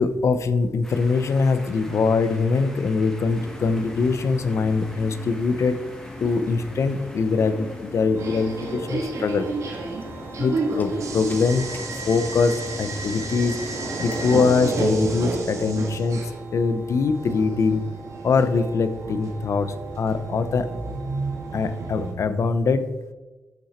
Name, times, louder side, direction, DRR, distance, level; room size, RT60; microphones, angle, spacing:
voice 1, 0.0-5.8 6.2-9.5 10.4-11.7 12.1-13.6 14.0-16.2 16.5-17.8 18.2-20.7 21.5-22.9, left 4 dB, 60° left, 11 dB, 0.9 m, -23 dB
sound 1, 0.8-9.1, equal, 5° left, 2.1 m, -46 dB
sound 2, 3.3-22.4, left 2 dB, 35° left, 1.8 m, -42 dB
sound 3, 8.2-22.1, right 3 dB, 70° right, 1.9 m, -31 dB
13.5 x 6.2 x 4.4 m, 1.1 s
cardioid pair, 90°, 6 cm